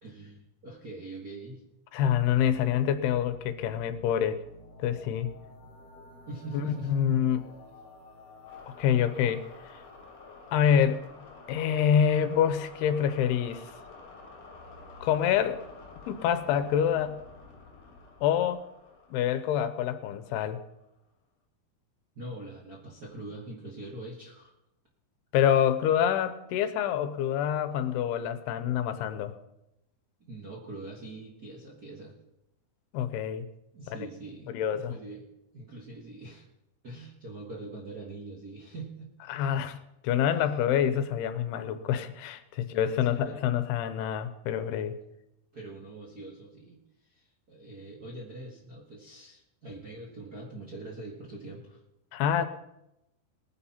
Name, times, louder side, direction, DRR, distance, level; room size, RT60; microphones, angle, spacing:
voice 1, 0.0-1.6 6.2-6.9 22.1-24.5 30.2-32.1 33.7-35.2 35.5-36.4 36.8-39.1 42.7-43.4 45.5-51.8, right 2 dB, 55° right, -4 dB, 1.0 m, -43 dB
voice 2, 1.9-4.4 4.8-5.3 6.6-7.5 8.8-9.5 10.5-11.0 11.5-13.6 15.0-15.6 16.1-17.2 18.2-18.6 19.1-20.6 25.3-29.3 32.9-33.5 33.9-34.0 34.5-34.9 39.3-39.8 40.0-45.0 52.1-52.5, left 9 dB, 85° left, 11 dB, 2.7 m, -26 dB
sound 1, 2.3-20.8, left 3 dB, 45° left, 3.3 m, -50 dB
20.5 x 9.9 x 4.3 m, 0.89 s
omnidirectional pair, 4.7 m